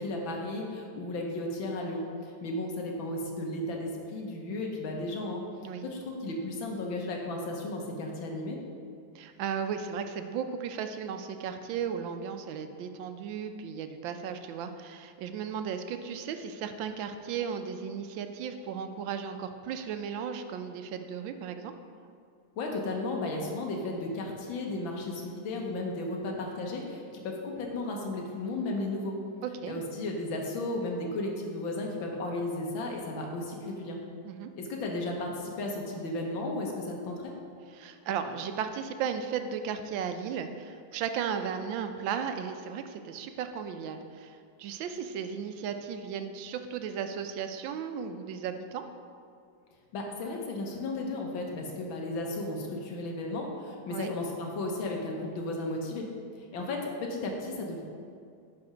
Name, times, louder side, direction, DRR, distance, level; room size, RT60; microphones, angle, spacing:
voice 1, 0.0-5.4 5.8-8.6 22.6-29.2 29.7-34.0 34.6-37.3 49.9-56.1 56.5-57.8, left 2 dB, 90° left, 0 dB, 1.8 m, -34 dB
voice 2, 9.1-21.7 29.4-29.8 34.2-34.5 37.7-48.8 53.9-54.1, right 7 dB, 85° right, 8 dB, 1.4 m, -35 dB
10.5 x 4.2 x 4.9 m, 2.4 s
omnidirectional pair, 2.1 m